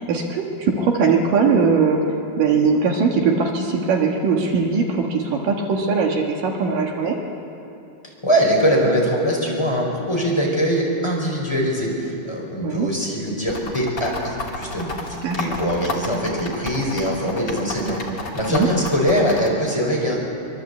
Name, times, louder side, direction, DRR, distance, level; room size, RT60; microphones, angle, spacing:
voice 1, 0.0-2.0 2.4-7.2 12.6-12.9 15.2-15.6 18.5-18.7, right 5 dB, 70° right, 1 dB, 3.1 m, -20 dB
voice 2, 8.2-20.2, equal, 5° left, -2 dB, 4.9 m, -22 dB
sound 1, 13.5-19.5, left 3 dB, 30° left, 2.7 m, -31 dB
24.5 x 23.5 x 8.3 m, 2.8 s
omnidirectional pair, 4.2 m